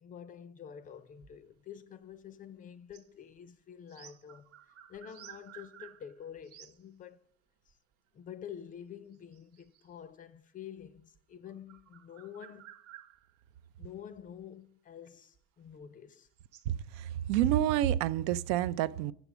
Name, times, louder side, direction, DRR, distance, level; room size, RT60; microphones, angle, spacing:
voice 1, 0.0-7.2 7.7-7.8 8.1-12.7 13.8-16.3, left 8 dB, 25° left, 0.4 m, -48 dB
sound 1, 1.2-1.4 1.7-1.8 2.1-2.2 2.9-3.1 3.4-3.5 3.9-6.8 7.7-7.9 9.1-9.9 10.8-13.4 14.1-14.5 15.3-15.4 15.8-15.9 16.3-17.6, right 12 dB, 45° right, 0.6 m, -55 dB
voice 2, 16.7-19.1, right 12 dB, 85° right, 0.5 m, -29 dB
8.1 x 7.0 x 6.0 m
cardioid pair, 145°, 34 cm